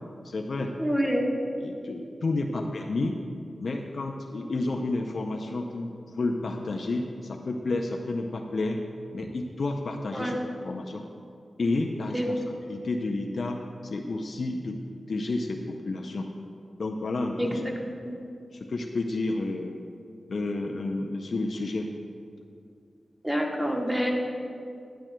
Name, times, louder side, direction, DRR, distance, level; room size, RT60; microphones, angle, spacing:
voice 1, 0.2-0.7 1.6-3.1 3.6-8.8 9.1-11.0 11.6-12.4 12.7-14.8 15.1-16.3 16.8-17.6 18.5-19.7 20.3-21.9, left 2 dB, 70° left, 2 dB, 0.4 m, -30 dB
voice 2, 0.8-1.2 10.1-10.4 12.1-12.3 17.4-17.8 18.0-18.2 23.2-24.1, equal, 15° right, 0 dB, 1.2 m, -27 dB
10.0 x 9.1 x 2.2 m, 2.4 s
cardioid pair, 50°, 0 cm